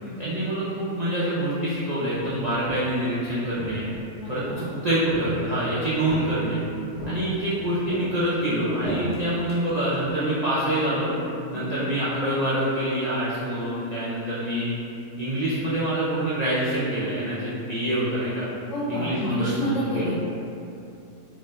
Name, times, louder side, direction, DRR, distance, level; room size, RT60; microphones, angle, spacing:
voice 1, 0.2-3.9 4.3-6.6 7.1-11.1 11.5-14.7 15.2-18.5 18.9-20.1, right 1 dB, 85° right, -10 dB, 0.3 m, -26 dB
Walk footsteps, 2.7-3.1 3.5-4.6 5.1-5.7 6.1-6.6 7.0-7.6 7.9-10.1, right 1 dB, 35° left, 0.7 m, -35 dB
voice 2, 4.2-4.6 7.0-7.2 11.5-11.7 18.7-20.1, equal, 65° left, -9 dB, 1.0 m, -29 dB
2.5 x 2.2 x 3.8 m, 2.7 s
omnidirectional pair, 1.4 m